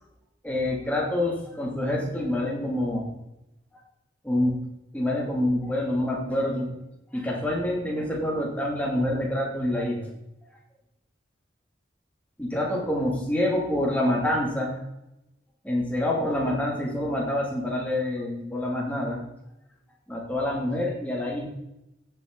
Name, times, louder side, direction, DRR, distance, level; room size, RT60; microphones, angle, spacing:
voice 1, 0.4-3.2 4.2-4.6 4.9-6.7 7.1-10.1 12.4-14.8 15.6-19.2 20.1-21.5, left 1 dB, 10° left, -3 dB, 2.9 m, -27 dB
15.5 x 7.9 x 4.1 m, 0.89 s
head